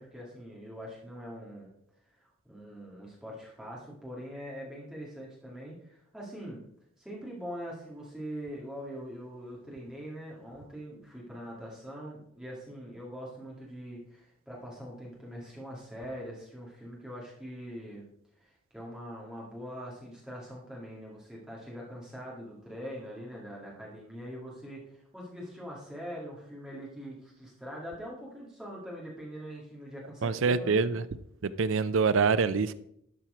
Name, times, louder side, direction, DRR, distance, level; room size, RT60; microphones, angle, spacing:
voice 1, 0.0-1.7 2.4-6.6 7.0-18.1 18.4-30.8, equal, 5° right, 1.9 m, -43 dB
voice 2, 30.2-31.0 31.4-32.7, right 5 dB, 60° right, 0.4 m, -25 dB
11.5 x 4.5 x 4.9 m
head